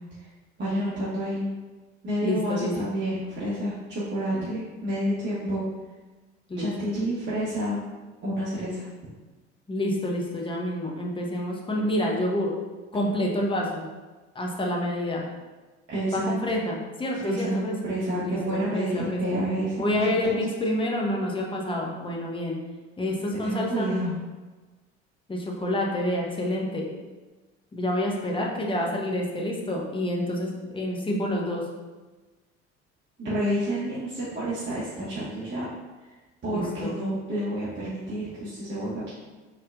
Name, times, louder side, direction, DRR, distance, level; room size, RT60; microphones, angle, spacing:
voice 1, 0.6-1.4 2.0-5.6 6.6-7.8 8.2-8.9 15.9-16.3 17.2-17.6 17.8-20.4 23.4-24.2 33.2-35.7 36.4-39.1, equal, 30° right, -10 dB, 1.3 m, -29 dB
voice 2, 2.2-2.7 4.3-4.5 6.5-6.7 9.7-12.5 12.9-13.9 14.3-15.2 16.1-17.8 18.2-19.2 19.8-22.6 23.0-23.9 25.3-26.9 27.7-31.6 36.5-36.9, left 1 dB, 15° left, -1 dB, 0.9 m, -28 dB
4.2 x 3.3 x 2.5 m, 1.2 s
hypercardioid pair, 60°, 35 cm